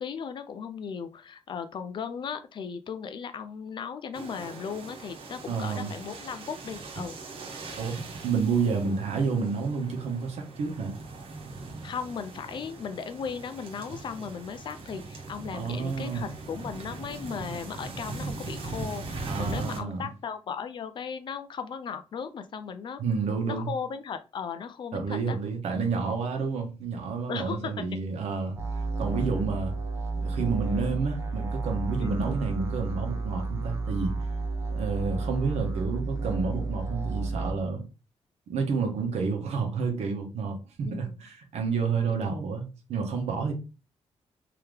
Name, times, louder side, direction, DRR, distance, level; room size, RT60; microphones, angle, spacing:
voice 1, 0.0-7.2 11.8-23.0 23.5-25.4 27.3-27.7 32.0-32.3 40.8-41.1 42.1-42.4, left 6 dB, 45° left, 0.4 m, -37 dB
sound 1, 4.1-19.8, right 3 dB, 60° right, 1.1 m, -40 dB
voice 2, 5.5-5.9 7.8-10.9 15.5-16.3 19.2-20.1 23.0-23.7 24.9-28.6 29.0-29.7 30.2-34.1 34.7-37.8 38.5-43.5, right 5 dB, 80° right, 1.1 m, -30 dB
sound 2, 28.6-37.5, right 3 dB, 25° right, 0.7 m, -31 dB
3.7 x 2.8 x 3.2 m
wide cardioid pair, 175°, 11 cm